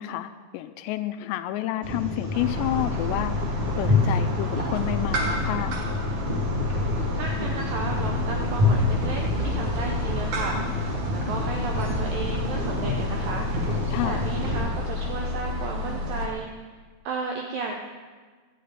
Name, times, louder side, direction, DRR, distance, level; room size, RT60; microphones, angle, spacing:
voice 1, 0.0-3.3 3.8-5.8 13.9-14.2, left 14 dB, 85° left, 10 dB, 2.6 m, -30 dB
sound 1, 1.8-14.6, left 2 dB, 40° right, 0.7 m, -28 dB
sound 2, 2.3-16.3, left 2 dB, 55° right, 2.4 m, -31 dB
voice 2, 7.2-13.5 14.0-16.5 17.0-17.8, right 4 dB, 80° right, 2 dB, 2.0 m, -33 dB
11.5 x 6.6 x 9.3 m, 1.5 s
omnidirectional pair, 5.1 m